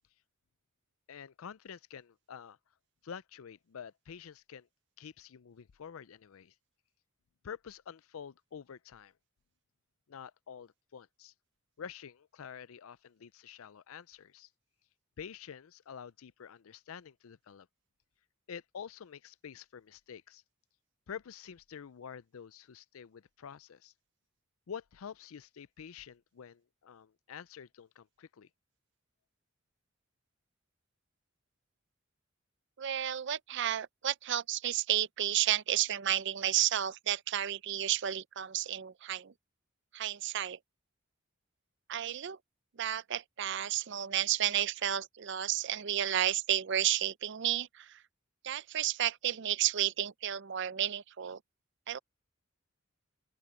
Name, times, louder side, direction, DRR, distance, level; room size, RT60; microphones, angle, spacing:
voice 1, 1.1-2.6 3.0-4.7 5.0-6.5 7.4-9.1 10.1-11.3 11.8-14.5 15.2-17.7 18.5-20.4 21.1-23.9 24.7-28.5, left 7 dB, 85° left, 0.5 m, -48 dB
voice 2, 32.8-39.3 39.9-40.6 41.9-42.4 42.8-48.0 48.4-51.4 51.9-52.0, right 11 dB, 55° right, 0.5 m, -32 dB
open air
head